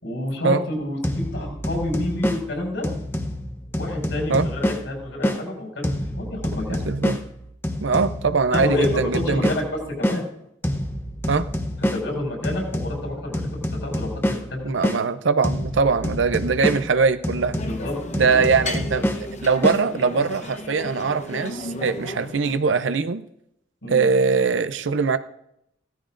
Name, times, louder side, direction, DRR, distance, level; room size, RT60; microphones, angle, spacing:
voice 1, 0.0-2.9 3.7-6.8 8.5-9.6 10.0-10.2 11.9-13.5 13.8-14.6 16.7-16.9 17.6-17.9 18.2-18.4 23.8-24.0, left 1 dB, 75° left, 0 dB, 5.9 m, -29 dB
sound 1, 1.0-5.4 5.8-10.2 10.6-15.0 15.4-19.8, equal, 10° left, 0.9 m, -28 dB
voice 2, 6.7-7.2 7.8-9.5 11.3-11.5 14.6-17.6 18.2-19.1 19.4-23.2 23.9-25.2, right 5 dB, 80° right, 11 dB, 0.6 m, -21 dB
sound 2, 17.5-22.6, left 1 dB, 40° left, 1.0 m, -34 dB
17.0 x 13.5 x 2.6 m, 0.76 s
head